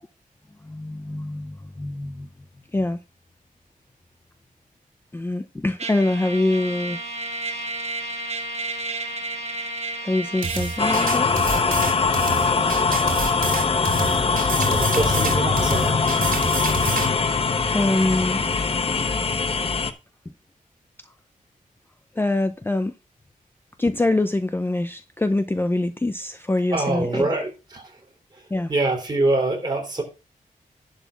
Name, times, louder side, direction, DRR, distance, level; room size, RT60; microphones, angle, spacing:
voice 1, 0.6-2.3 2.7-3.0 5.1-7.0 10.0-11.3 17.7-18.4 19.0-19.1 22.2-22.9 23.8-27.3 28.5-28.7, left 2 dB, 15° left, 0.5 m, -24 dB
Trumpet, 5.8-11.1, right 2 dB, 45° right, 1.4 m, -31 dB
sound 1, 10.4-17.1, right 4 dB, 75° right, 2.9 m, -28 dB
sound 2, 10.8-19.9, left 4 dB, 40° left, 1.0 m, -22 dB
voice 2, 14.6-16.1 26.7-28.0 28.3-28.4 28.7-30.0, right 2 dB, 30° right, 3.3 m, -25 dB
11.0 x 3.9 x 7.1 m
wide cardioid pair, 170°, 15 cm